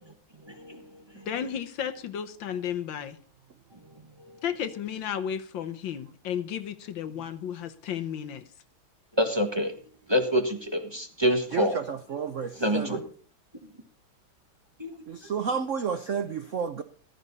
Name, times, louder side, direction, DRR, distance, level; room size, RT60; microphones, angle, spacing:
voice 1, 0.5-0.8 9.2-9.7 10.1-11.8 12.5-13.0 14.8-15.1, equal, 15° right, 1.4 m, -26 dB
voice 2, 1.2-3.2 4.4-8.4, left 9 dB, 70° left, 1.6 m, -33 dB
voice 3, 11.5-13.0 15.1-16.8, right 6 dB, 60° right, 0.8 m, -31 dB
14.5 x 13.0 x 4.1 m
omnidirectional pair, 2.2 m